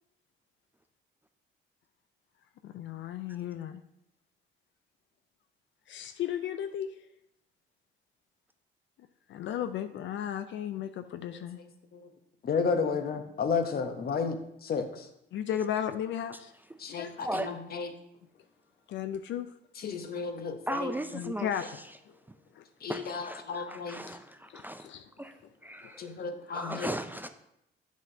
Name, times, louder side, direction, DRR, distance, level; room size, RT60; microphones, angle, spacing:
voice 1, 2.6-3.8 5.9-6.9 9.3-11.6 15.3-16.5 17.0-17.1 18.9-19.5 21.1-21.7 22.5-22.6 24.1-24.2 24.5-25.1 25.8-25.9, left 10 dB, 70° left, 0.4 m, -35 dB
voice 2, 11.2-12.1 12.4-15.1 16.8-18.0 19.7-21.0 21.6-21.7 22.8-24.0 25.8-26.9, left 5 dB, 50° left, 0.9 m, -33 dB
voice 3, 20.7-21.5 22.9-23.0 23.3-23.4 23.7-24.9 25.2-25.3 25.6-26.0 26.5-27.3, right 1 dB, 10° right, 0.4 m, -36 dB
8.7 x 6.2 x 2.7 m
cardioid pair, 90°, 20 cm